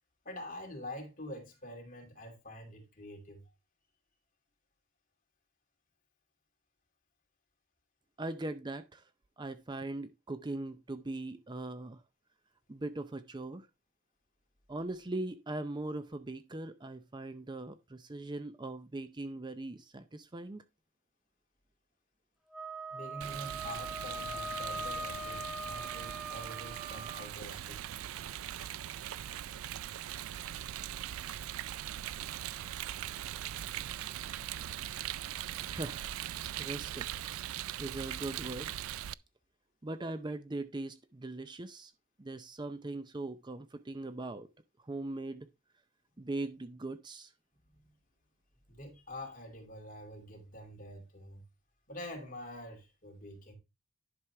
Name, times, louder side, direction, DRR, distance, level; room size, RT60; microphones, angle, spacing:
voice 1, 0.2-3.4 22.9-27.8 47.7-47.9 48.7-51.4 51.9-53.5, left 1 dB, 40° left, 2.6 m, -46 dB
voice 2, 8.2-9.0 9.4-12.0 12.7-13.7 14.7-20.6 35.6-36.1 36.6-37.1 37.8-38.7 39.8-41.9 42.2-44.5 44.8-45.5 46.2-47.3, right 2 dB, 20° right, 0.5 m, -40 dB
Wind instrument woodwind instrument, 22.5-27.3, right 2 dB, 5° right, 1.4 m, -41 dB
Rain, 23.2-39.1, right 11 dB, 80° right, 0.4 m, -40 dB
11.0 x 6.1 x 3.4 m
head